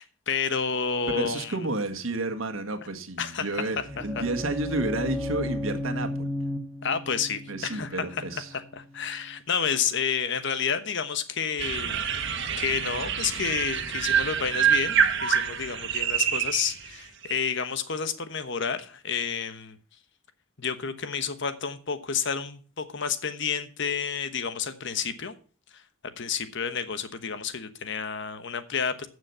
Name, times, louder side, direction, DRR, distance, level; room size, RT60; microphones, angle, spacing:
voice 1, 0.0-1.6 3.2-4.2 6.8-12.3 12.6-19.8 20.6-25.3 25.7-25.8 26.2-29.1, left 6 dB, 60° left, 11 dB, 1.2 m, -30 dB
voice 2, 1.1-6.3 7.5-8.5, right 2 dB, 80° right, 6 dB, 1.6 m, -31 dB
sound 1, 3.6-9.3, left 1 dB, 5° left, 1.1 m, -35 dB
sound 2, 11.6-16.9 17.2-17.4, right 8 dB, 60° right, 1.5 m, -26 dB
14.5 x 6.4 x 5.6 m, 0.38 s
head